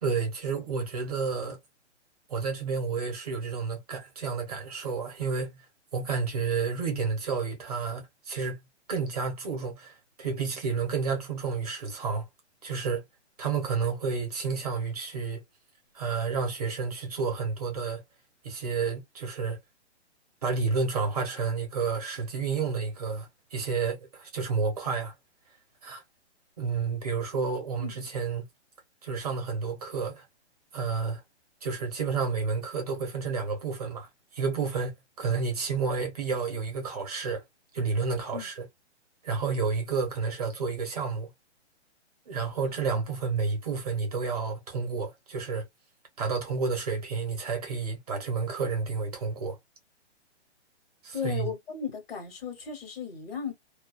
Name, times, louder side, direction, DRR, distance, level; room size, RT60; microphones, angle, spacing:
voice 1, 0.0-1.6 2.3-5.6 5.9-8.6 8.9-12.2 12.6-13.0 13.4-15.4 15.9-18.0 18.4-19.6 20.4-25.1 25.8-26.0 26.6-28.4 29.0-30.3 30.7-31.2 31.6-37.4 37.7-38.7 39.2-41.3 42.3-45.6 46.2-49.6 51.0-51.5, right 5 dB, 35° right, 0.8 m, -30 dB
voice 2, 42.6-43.0 51.1-53.5, left 7 dB, 55° left, 1.1 m, -36 dB
2.4 x 2.3 x 2.3 m
hypercardioid pair, 170°, 35 cm